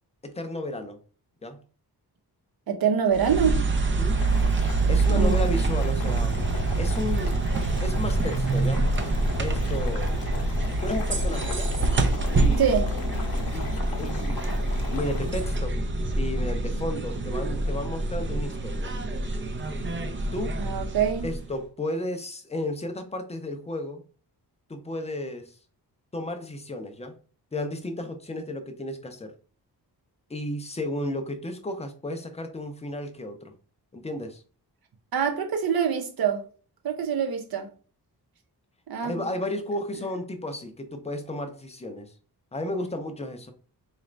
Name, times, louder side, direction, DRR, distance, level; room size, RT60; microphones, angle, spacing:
voice 1, 0.2-1.0 1.4-1.6 3.8-4.2 4.9-6.4 6.8-7.3 7.8-8.8 9.4-10.1 10.8-11.7 12.3-12.7 13.5-14.5 14.9-15.8 16.1-19.0 20.3-20.6 21.2-24.0 24.7-25.6 26.1-27.1 27.5-29.4 30.3-33.5 33.9-34.4 39.0-42.1 42.5-43.5, left 1 dB, 15° left, 0.5 m, -33 dB
voice 2, 2.7-3.6 5.1-5.4 12.6-12.9 20.6-21.3 35.1-36.4 36.8-37.7 38.9-39.2, right 7 dB, 65° right, 0.8 m, -25 dB
sound 1, 3.1-21.6, right 2 dB, 30° right, 0.5 m, -26 dB
Boiling, 4.0-15.6, left 4 dB, 60° left, 0.8 m, -39 dB
4.1 x 2.5 x 3.2 m
wide cardioid pair, 135°, 39 cm